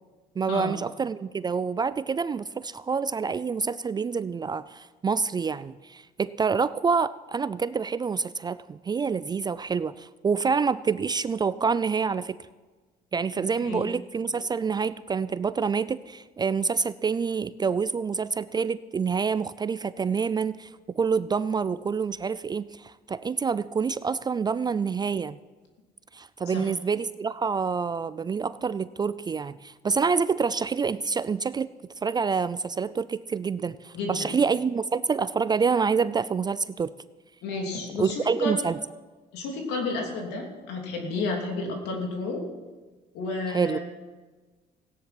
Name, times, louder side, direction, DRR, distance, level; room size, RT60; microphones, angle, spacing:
voice 1, 0.4-12.4 13.1-25.4 26.1-31.7 32.0-36.9 38.0-38.8 43.5-43.8, right 5 dB, 25° right, 16 dB, 0.4 m, -27 dB
voice 2, 33.9-34.3 37.4-38.6 39.3-42.5 43.1-43.8, left 3 dB, 85° left, 1 dB, 3.0 m, -31 dB
16.5 x 10.0 x 6.0 m, 1.3 s
cardioid pair, 110°, 17 cm